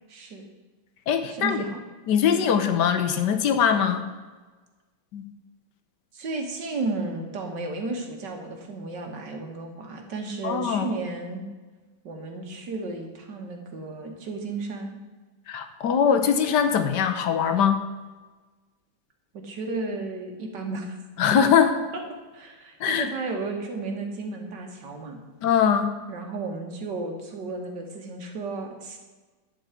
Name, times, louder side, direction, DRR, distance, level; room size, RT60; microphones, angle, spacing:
voice 1, 0.1-0.4 1.3-1.8 2.3-2.4 6.1-11.5 12.0-15.0 19.3-21.0 22.3-25.2 26.1-29.0, right 3 dB, 75° right, 3 dB, 2.1 m, -33 dB
voice 2, 1.1-1.6 2.1-4.0 5.1-5.2 10.4-10.9 15.5-17.8 21.2-21.7 22.8-23.1 25.4-25.9, left 7 dB, 75° left, 8 dB, 1.4 m, -22 dB
11.0 x 4.8 x 8.2 m, 1.3 s
omnidirectional pair, 1.9 m